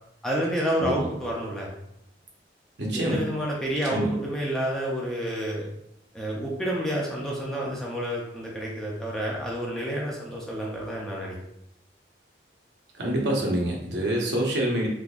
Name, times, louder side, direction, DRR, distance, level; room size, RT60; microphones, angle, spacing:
voice 1, 0.2-1.7 2.9-5.7 6.1-11.3, equal, 5° left, -4 dB, 0.5 m, -29 dB
voice 2, 2.8-3.3 3.9-4.1 13.0-14.9, right 1 dB, 75° right, -2 dB, 0.9 m, -26 dB
3.6 x 2.9 x 2.4 m, 0.79 s
head